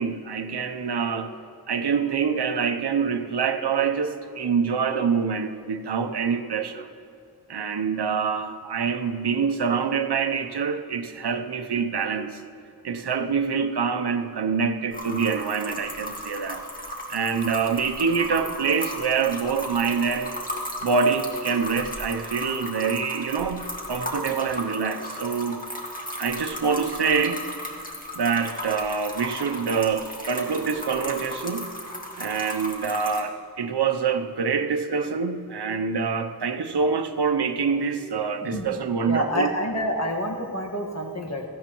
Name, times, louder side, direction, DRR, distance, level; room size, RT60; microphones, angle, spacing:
voice 1, 0.0-1.4 1.7-6.9 7.5-12.4 12.8-16.6 17.1-20.4 20.8-25.6 26.2-27.4 28.1-31.7 32.2-39.6, right 5 dB, 90° right, 8 dB, 0.7 m, -25 dB
sound 1, 14.9-33.2, left 1 dB, 20° left, 1.9 m, -35 dB
voice 2, 39.1-41.4, equal, 40° left, 1 dB, 1.6 m, -27 dB
16.5 x 14.5 x 3.0 m, 2.5 s
wide cardioid pair, 55°, 39 cm